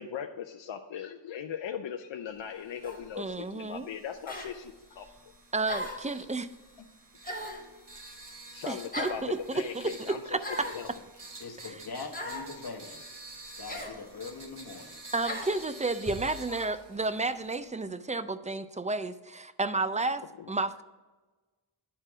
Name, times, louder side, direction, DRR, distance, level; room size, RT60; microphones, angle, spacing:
voice 1, 0.0-5.1 8.5-10.9 16.5-16.7 18.2-18.3 20.4-20.5, left 8 dB, 75° left, 6 dB, 0.6 m, -39 dB
sound 1, 2.7-17.6, right 2 dB, 60° right, 1.4 m, -50 dB
sound 2, 2.8-3.1 4.3-4.5 5.7-6.1 7.2-7.7 8.9-9.2 10.4-10.8 12.1-12.5 13.7-14.0 15.2-15.5, left 1 dB, 20° left, 1.5 m, -37 dB
voice 2, 3.2-3.9 5.5-6.5 8.7-10.7 11.6-11.8 15.1-20.8, right 3 dB, 20° right, 12 dB, 0.3 m, -32 dB
sound 3, 10.9-12.4 12.7-12.8 13.1-13.9 14.2-15.4 15.7-17.8, right 1 dB, 35° right, 1.6 m, -49 dB
voice 3, 11.4-13.0 13.6-15.0, left 4 dB, 55° left, 2 dB, 1.2 m, -42 dB
10.0 x 4.5 x 4.8 m, 1.3 s
wide cardioid pair, 85°, 46 cm